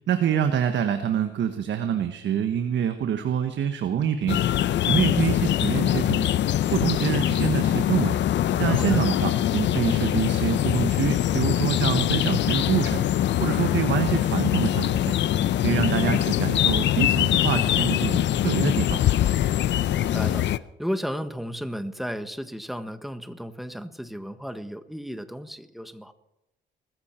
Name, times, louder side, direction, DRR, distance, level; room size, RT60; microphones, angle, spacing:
voice 1, 0.1-4.4 4.9-6.3 6.7-8.2 8.6-13.0 13.4-15.1 15.6-19.0, right 8 dB, 65° right, 7 dB, 1.3 m, -26 dB
sound 1, 4.3-20.6, left 12 dB, 65° left, 0.7 m, -23 dB
voice 2, 8.7-9.1 15.7-16.0 19.9-20.5 20.8-26.1, equal, ahead, 9 dB, 1.4 m, -34 dB
20.5 x 14.0 x 4.5 m, 0.85 s
cardioid pair, 90°, 20 cm